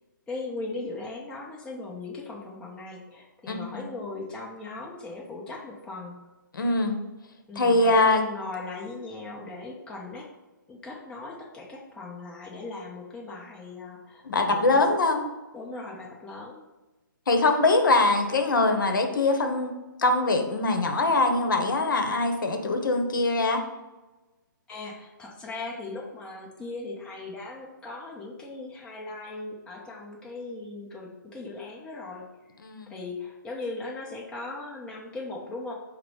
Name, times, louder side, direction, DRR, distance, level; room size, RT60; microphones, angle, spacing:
voice 1, 0.3-6.2 7.5-10.3 10.7-14.8 15.5-16.6 24.7-32.2 32.9-35.7, left 3 dB, 10° left, -3 dB, 0.6 m, -38 dB
voice 2, 3.5-3.8 6.5-7.0 7.6-8.2 14.2-15.2 17.3-19.7 20.0-23.6 32.6-32.9, left 2 dB, 70° left, 5 dB, 0.8 m, -23 dB
4.8 x 2.1 x 4.6 m, 1.1 s
hypercardioid pair, 140°, 11 cm